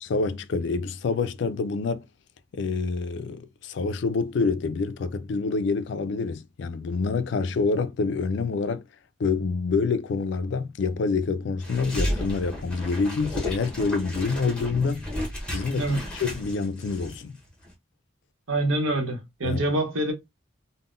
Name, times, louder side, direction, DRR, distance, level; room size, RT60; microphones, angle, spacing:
voice 1, 0.0-2.0 2.5-8.8 9.2-15.1 15.5-15.9 16.2-17.4 19.4-19.8, left 4 dB, 60° left, 0.3 m, -27 dB
sound 1, 11.6-17.2 17.5-17.7, equal, 5° left, 0.9 m, -33 dB
voice 2, 18.5-20.1, right 1 dB, 85° right, 0.9 m, -25 dB
3.6 x 2.1 x 2.5 m
head